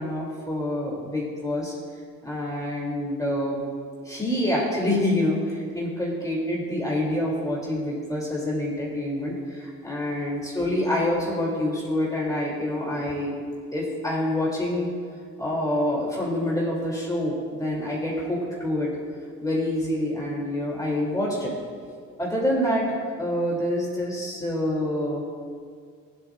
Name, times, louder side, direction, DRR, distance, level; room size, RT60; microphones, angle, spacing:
voice 1, 0.0-1.7 2.2-3.6 4.0-13.3 13.7-14.9 15.4-18.9 19.4-21.5 22.2-22.9 23.2-25.2, left 1 dB, 10° left, -5 dB, 2.6 m, -26 dB
15.0 x 10.5 x 2.4 m, 2.1 s
cardioid pair, 90°, 30 cm